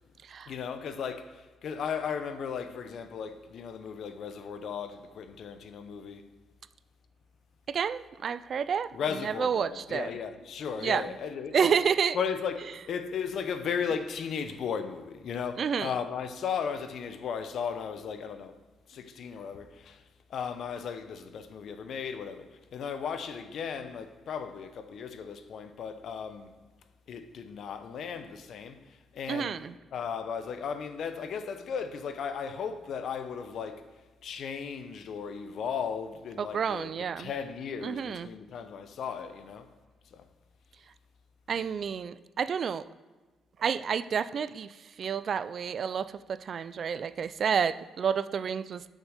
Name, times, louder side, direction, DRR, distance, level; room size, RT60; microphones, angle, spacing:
voice 1, 0.5-6.3 8.9-11.8 12.1-18.6 18.9-20.0 20.3-26.5 27.1-29.6 29.9-33.8 34.2-39.7 40.1-40.2, left 6 dB, 65° left, 0.7 m, -36 dB
voice 2, 7.7-8.9 9.2-10.1 10.8-11.1 11.5-12.2 15.6-15.9 29.3-29.7 36.4-37.3 37.8-38.3 41.5-42.8 43.6-44.7 45.0-48.9, right 7 dB, 55° right, 0.3 m, -29 dB
6.3 x 6.3 x 6.6 m
cardioid pair, 90°, 0 cm